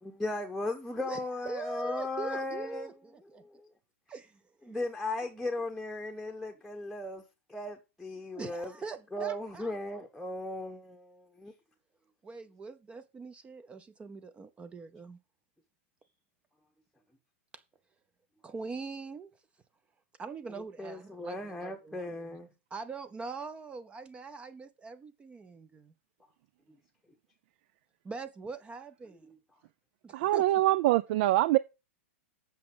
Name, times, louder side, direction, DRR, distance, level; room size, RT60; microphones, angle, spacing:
voice 1, 0.0-3.0 3.4-3.7 4.7-7.2 7.5-8.7 9.1-11.5 20.8-22.5, left 2 dB, ahead, 1.1 m, -37 dB
voice 2, 1.0-3.6 4.1-4.4 8.3-9.8 12.2-15.2 17.5-17.6 18.4-19.3 20.2-22.0 22.7-25.9 28.0-29.3 30.0-30.4, right 4 dB, 15° right, 0.7 m, -43 dB
voice 3, 30.1-31.6, right 16 dB, 50° right, 0.4 m, -24 dB
8.3 x 6.2 x 6.2 m
hypercardioid pair, 135°, 7 cm